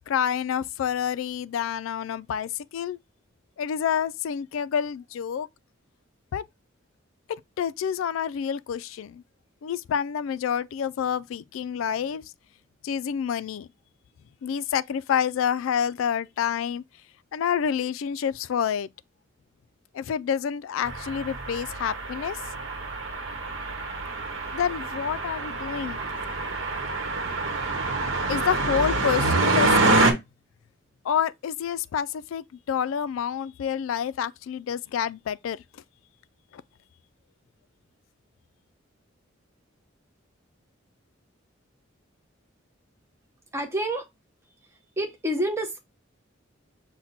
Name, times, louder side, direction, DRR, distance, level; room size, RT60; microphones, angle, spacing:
voice 1, 0.1-3.0 3.6-5.5 6.3-6.4 7.3-9.2 9.6-12.2 12.8-13.7 14.4-16.8 17.3-18.9 19.9-22.4 24.5-26.0 28.3-30.2 31.0-35.6, left 8 dB, 85° left, 0.3 m, -28 dB
sound 1, 20.8-30.1, right 3 dB, 70° right, 1.0 m, -26 dB
voice 2, 43.5-44.1 45.0-45.8, right 1 dB, 15° right, 0.7 m, -28 dB
5.8 x 2.2 x 4.0 m
head